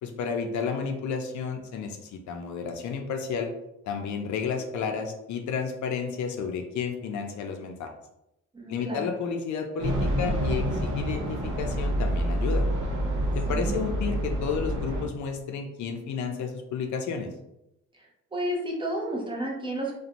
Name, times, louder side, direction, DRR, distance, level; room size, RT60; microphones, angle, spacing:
voice 1, 0.0-3.5 3.8-7.9 8.7-12.6 13.4-17.3, left 6 dB, 70° left, 4 dB, 0.5 m, -31 dB
voice 2, 8.5-9.1 13.5-13.8 18.3-19.9, right 1 dB, 15° right, -1 dB, 0.7 m, -31 dB
sound 1, 9.8-15.0, equal, 40° right, 0.9 m, -27 dB
2.5 x 2.2 x 2.9 m, 0.86 s
cardioid pair, 90°, 30 cm